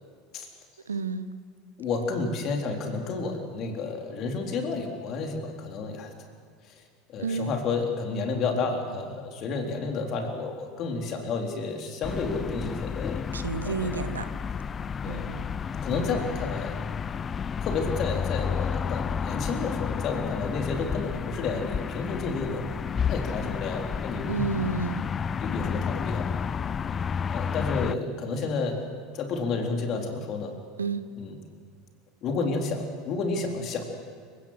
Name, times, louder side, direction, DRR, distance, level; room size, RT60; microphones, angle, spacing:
voice 1, 0.8-1.3 7.2-7.5 13.3-14.3 15.1-15.5 24.3-25.1 30.8-31.0, right 5 dB, 80° right, 13 dB, 1.0 m, -30 dB
voice 2, 1.8-6.1 6.7-6.8 7.1-13.2 13.6-14.0 15.0-15.3 15.8-16.7 17.6-22.6 23.1-24.3 25.4-26.3 27.3-28.8 29.1-30.5 31.2-31.4 32.2-33.8, left 4 dB, 45° left, 3 dB, 3.8 m, -31 dB
sound 1, 12.0-27.9, left 6 dB, 25° left, 0.5 m, -31 dB
29.5 x 17.5 x 6.5 m, 2.1 s
figure-of-eight pair, 75°, 0 cm